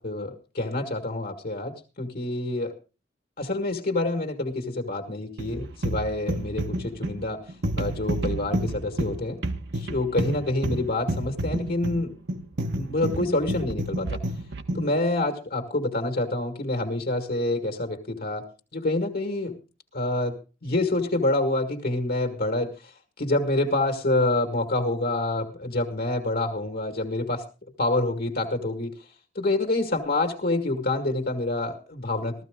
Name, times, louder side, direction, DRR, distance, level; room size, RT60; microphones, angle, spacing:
voice 1, 0.0-2.7 3.4-7.4 7.8-9.4 9.7-12.2 12.8-14.2 14.7-18.4 18.7-19.6 19.9-22.9 23.2-27.4 27.8-28.9 29.4-32.4, left 2 dB, 50° left, 4 dB, 1.8 m, -27 dB
sound 1, 5.4-15.0, right 1 dB, 60° right, 1.2 m, -30 dB
15.0 x 14.0 x 3.6 m, 0.33 s
head